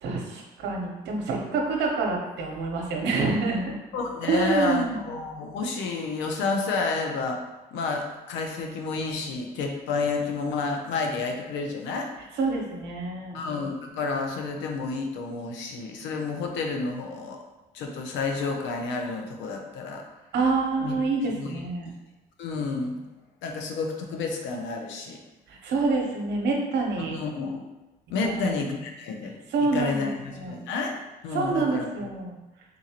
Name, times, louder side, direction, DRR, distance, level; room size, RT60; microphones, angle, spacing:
voice 1, 0.0-3.8 4.3-5.0 12.3-13.4 20.3-21.9 25.5-27.2 28.3-28.6 29.5-30.6 31.3-32.4, right 3 dB, 65° right, 0 dB, 0.8 m, -27 dB
voice 2, 3.9-7.4 7.7-12.1 13.3-17.4 17.7-20.0 20.8-21.0 21.3-21.6 22.4-23.0 23.4-25.2 27.1-27.6 28.1-30.9 31.2-31.9, left 4 dB, 80° left, 3 dB, 0.6 m, -30 dB
3.8 x 2.6 x 2.9 m, 1.1 s
supercardioid pair, 70°, 19 cm